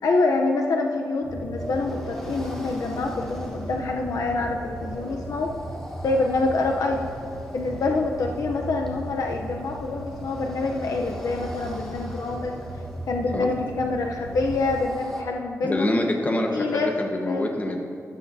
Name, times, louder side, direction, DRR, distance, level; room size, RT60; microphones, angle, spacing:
voice 1, 0.0-5.5 6.0-7.1 7.5-12.6 13.1-15.9 16.5-16.9 17.2-17.5, left 3 dB, 75° left, 1 dB, 0.7 m, -26 dB
sound 1, 1.2-14.9, right 1 dB, 30° right, 1.2 m, -38 dB
sound 2, 1.6-15.2, equal, 5° left, 1.3 m, -40 dB
voice 2, 15.6-17.8, left 1 dB, 25° left, 2 dB, 1.2 m, -26 dB
12.5 x 12.0 x 2.7 m, 2.3 s
wide cardioid pair, 105°, 6 cm